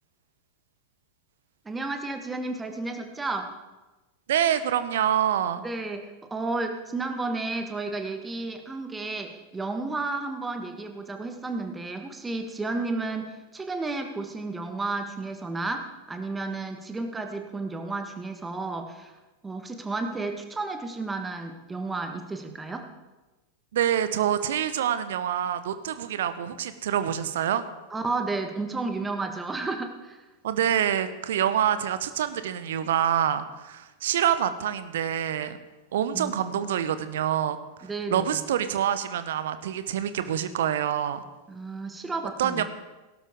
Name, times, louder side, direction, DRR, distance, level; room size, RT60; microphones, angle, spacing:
voice 1, 1.6-3.5 5.6-19.1 19.4-22.9 27.9-30.2 36.1-36.3 37.8-38.4 41.5-42.6, right 3 dB, 10° right, 6 dB, 1.5 m, -32 dB
voice 2, 4.3-5.6 23.7-27.6 30.4-35.6 35.9-37.6 38.1-41.2 42.4-42.6, right 10 dB, 60° right, 12 dB, 0.9 m, -26 dB
17.5 x 12.0 x 3.7 m, 1.1 s
figure-of-eight pair, 90°, 0 cm